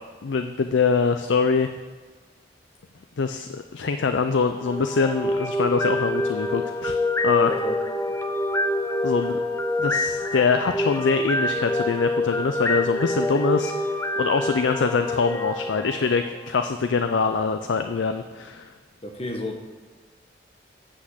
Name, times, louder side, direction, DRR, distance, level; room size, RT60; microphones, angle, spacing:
voice 1, 0.2-1.7 3.2-7.0 7.2-7.5 9.0-9.4 9.8-18.7, left 5 dB, 90° left, 7 dB, 0.5 m, -24 dB
sound 1, 4.6-16.7, left 1 dB, 15° left, 0.5 m, -26 dB
voice 2, 7.4-7.8 19.0-19.6, left 1 dB, 30° left, 2 dB, 1.1 m, -32 dB
8.5 x 6.0 x 7.8 m, 1.4 s
head